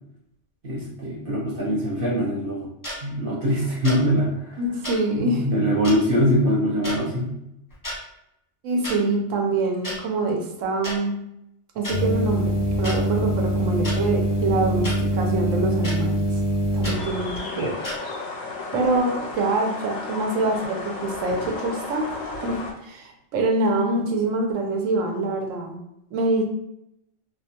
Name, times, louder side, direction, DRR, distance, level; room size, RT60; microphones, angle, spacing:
voice 1, 0.6-2.7 3.0-4.6 5.2-7.4, equal, 50° right, -5 dB, 0.9 m, -23 dB
sound 1, 2.8-3.0 3.8-4.0 4.8-5.0 5.8-6.0 6.8-7.0 7.7-8.0 8.8-9.0 9.8-10.0 10.8-11.0 11.8-12.0 12.8-13.0 13.8-14.0 14.8-15.0 15.8-16.0 16.8-17.0 17.8-18.0, equal, 20° left, 0.6 m, -31 dB
voice 2, 4.6-5.5 8.6-11.1 11.8-16.2 16.7-17.8 18.7-22.1 22.4-25.8 26.1-26.4, right 2 dB, 85° right, 2 dB, 1.0 m, -25 dB
sound 2, 11.9-16.9, right 1 dB, 70° left, 0.3 m, -23 dB
sound 3, 16.9-22.7, left 3 dB, 85° left, 0.9 m, -33 dB
2.3 x 2.2 x 2.7 m, 0.81 s
omnidirectional pair, 1.3 m